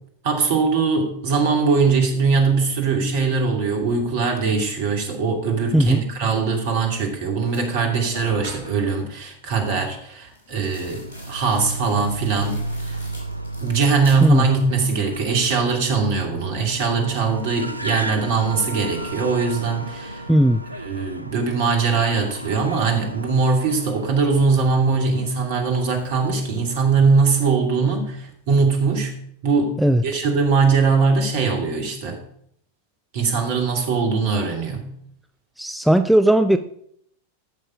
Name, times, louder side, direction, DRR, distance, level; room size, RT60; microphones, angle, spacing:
voice 1, 0.2-13.0 13.6-20.2 20.8-29.1 29.4-32.2 33.1-34.9, right 4 dB, 50° right, 3 dB, 2.8 m, -21 dB
voice 2, 5.7-6.0 14.2-14.5 20.3-20.6 29.8-30.0 35.6-36.6, right 1 dB, ahead, 9 dB, 0.5 m, -16 dB
sound 1, 7.0-7.1 7.5-8.9 10.3-14.9 15.2-15.8, left 2 dB, 65° left, 4.8 m, -43 dB
Car, 10.8-27.6, right 2 dB, 90° right, 0.5 m, -34 dB
Wind instrument woodwind instrument, 16.8-21.0, right 4 dB, 70° right, 2.9 m, -40 dB
14.5 x 6.6 x 4.9 m, 0.70 s
figure-of-eight pair, 90°, 0 cm